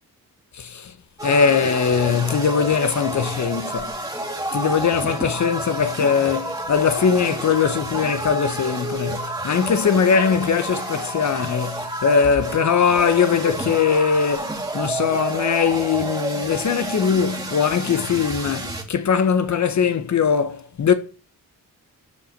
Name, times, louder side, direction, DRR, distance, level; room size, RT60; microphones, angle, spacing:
voice 1, 0.5-0.9 1.2-3.9 4.5-20.9, left 6 dB, 55° left, 1.2 m, -21 dB
sound 1, 1.2-18.8, right 2 dB, 10° right, 2.6 m, -30 dB
12.5 x 7.8 x 6.8 m
wide cardioid pair, 135°, 34 cm